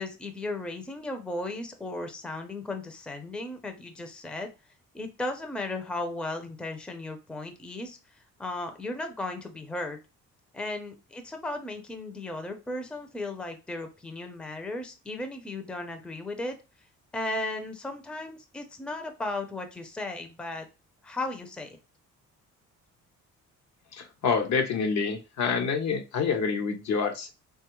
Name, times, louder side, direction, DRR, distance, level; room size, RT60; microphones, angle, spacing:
voice 1, 0.0-4.5 4.9-10.0 10.5-16.5 17.1-20.7 21.0-21.8, left 2 dB, 5° left, 6 dB, 0.5 m, -35 dB
voice 2, 23.9-27.3, left 5 dB, 65° left, 6 dB, 0.7 m, -27 dB
3.0 x 2.3 x 2.9 m, 0.29 s
cardioid pair, 90°, 30 cm